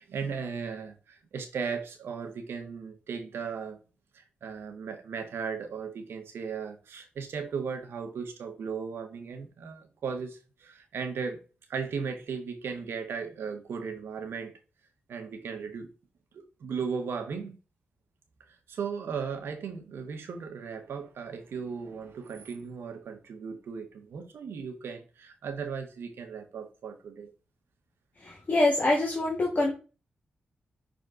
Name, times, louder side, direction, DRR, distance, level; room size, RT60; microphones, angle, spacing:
voice 1, 0.0-3.8 4.1-11.4 11.7-14.5 15.1-15.9 16.3-17.6 18.5-27.3, right 6 dB, 85° right, 1.3 m, -36 dB
voice 2, 28.2-29.7, left 2 dB, 45° left, 1.8 m, -25 dB
6.0 x 4.2 x 3.9 m
cardioid pair, 80°, 4 cm